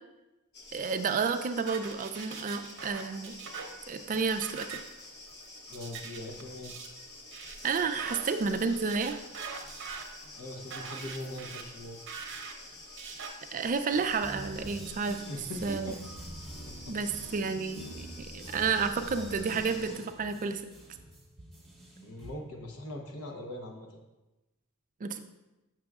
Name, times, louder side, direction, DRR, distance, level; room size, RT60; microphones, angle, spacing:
sound 1, 0.5-19.9, left 2 dB, 50° left, 0.9 m, -49 dB
voice 1, 0.7-3.4 3.9-4.8 7.6-9.2 13.5-15.2 15.6-15.9 16.9-20.6 25.0-25.2, right 5 dB, 35° right, 8 dB, 0.4 m, -31 dB
sound 2, 1.7-13.3, right 5 dB, 55° right, 0.7 m, -44 dB
voice 2, 5.7-6.7 10.3-12.0 15.1-16.0 16.6-16.9 22.0-24.0, left 1 dB, 75° left, 2 dB, 0.9 m, -41 dB
sound 3, 13.9-22.3, right 1 dB, ahead, 0.9 m, -46 dB
7.6 x 6.0 x 2.4 m, 1.0 s
head